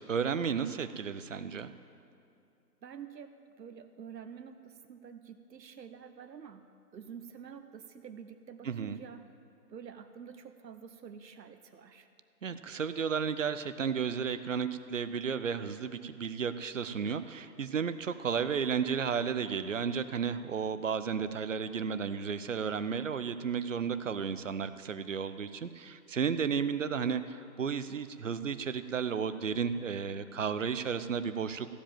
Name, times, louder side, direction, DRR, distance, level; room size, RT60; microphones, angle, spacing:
voice 1, 0.0-1.7 8.6-9.0 12.4-31.7, right 6 dB, 50° right, 12 dB, 0.6 m, -33 dB
voice 2, 2.8-6.6 6.9-9.3 9.7-12.1, right 7 dB, 90° right, 8 dB, 0.9 m, -48 dB
15.0 x 5.1 x 8.8 m, 2.6 s
hypercardioid pair, 165°, 49 cm